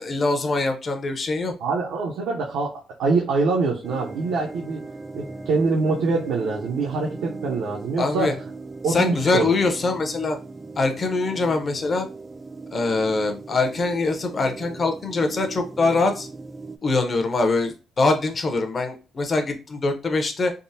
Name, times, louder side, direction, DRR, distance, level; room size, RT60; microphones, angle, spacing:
voice 1, 0.0-1.5 8.0-8.3 8.9-10.4 10.8-12.1 12.7-16.3 16.8-20.5, left 3 dB, 40° left, 5 dB, 0.7 m, -23 dB
voice 2, 1.6-4.8 5.1-8.4 8.8-9.6, right 3 dB, 85° right, -2 dB, 0.6 m, -24 dB
sound 1, 3.8-16.8, right 3 dB, 20° right, 0.3 m, -38 dB
3.5 x 2.0 x 2.7 m, 0.33 s
cardioid pair, 90°, 0 cm